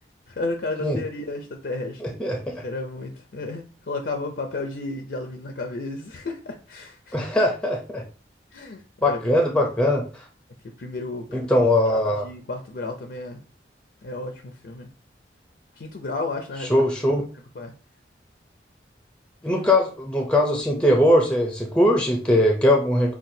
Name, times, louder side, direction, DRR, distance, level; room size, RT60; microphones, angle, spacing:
voice 1, 0.3-2.0 2.6-7.2 8.5-9.7 10.6-11.5 11.9-13.4 14.0-14.9 15.8-16.9 17.6-17.7, left 2 dB, 65° left, 4 dB, 0.5 m, -33 dB
voice 2, 2.0-2.6 7.1-8.0 9.0-10.2 11.3-12.3 16.7-17.2 19.4-23.2, left 1 dB, 5° left, 1 dB, 0.5 m, -21 dB
5.8 x 2.3 x 2.7 m, 0.37 s
head